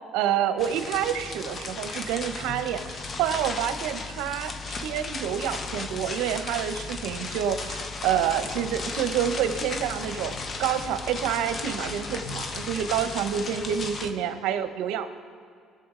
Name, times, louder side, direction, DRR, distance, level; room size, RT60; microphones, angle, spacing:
voice 1, 0.0-15.1, right 9 dB, 80° right, 10 dB, 0.8 m, -28 dB
sound 1, 0.6-14.1, left 3 dB, 35° left, 0.9 m, -35 dB
19.0 x 6.9 x 3.8 m, 2.3 s
cardioid pair, 110°, 0 cm